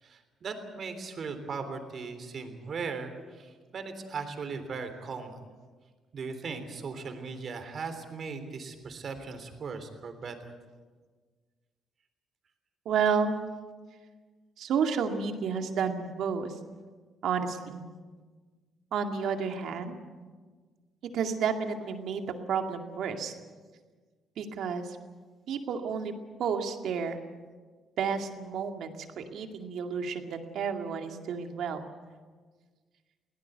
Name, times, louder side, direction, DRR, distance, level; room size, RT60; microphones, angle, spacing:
voice 1, 0.0-5.4 6.1-10.5, right 4 dB, 50° right, 8 dB, 3.5 m, -38 dB
voice 2, 12.9-13.3 14.6-16.6 17.2-17.8 18.9-20.0 21.1-23.3 24.4-25.0 25.5-26.1 26.4-27.2 28.0-31.9, right 6 dB, 75° right, 5 dB, 2.2 m, -31 dB
23.0 x 17.5 x 8.1 m, 1.4 s
cardioid pair, 90°, 0 cm